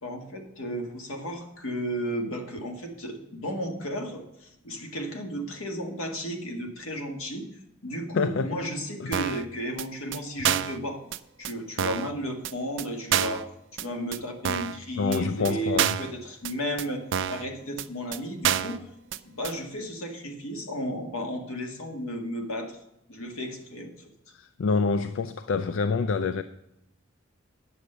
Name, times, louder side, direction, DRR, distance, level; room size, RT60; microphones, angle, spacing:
voice 1, 0.0-7.5 7.8-11.0 11.4-13.4 13.7-17.0 17.3-18.8 19.2-22.8 23.1-24.1, equal, 85° left, 1.9 m, -34 dB
voice 2, 8.1-8.5 9.0-9.1 15.0-16.0 24.3-26.4, left 4 dB, 65° left, 0.4 m, -26 dB
sound 1, 9.1-9.4 9.8-9.9 10.1-10.2 10.4-10.8 11.1-11.2 11.4-11.5 11.8-12.1 12.4-12.5 12.8-12.9 13.1-13.4 13.8-13.9 14.1-14.2 14.4-14.8 15.1-15.2 15.4-15.5 15.8-16.1 16.4-16.5 16.8-16.9 17.1-17.4 17.8-17.9 18.1-18.2 18.4-18.8 19.1-19.2 19.4-19.5, right 10 dB, 65° right, 0.5 m, -27 dB
9.6 x 7.3 x 6.6 m
head